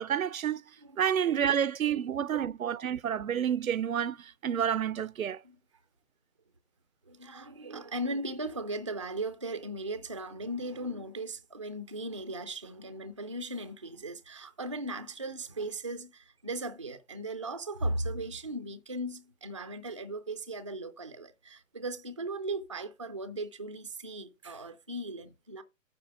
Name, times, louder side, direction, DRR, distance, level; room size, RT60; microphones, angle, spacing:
voice 1, 0.0-0.6 1.0-5.4, right 9 dB, 90° right, 0.6 m, -29 dB
voice 2, 0.8-1.4 1.9-2.0 5.4-5.6 7.1-25.6, right 1 dB, 25° right, 0.4 m, -37 dB
9.1 x 4.0 x 6.2 m
hypercardioid pair, 145°, 40 cm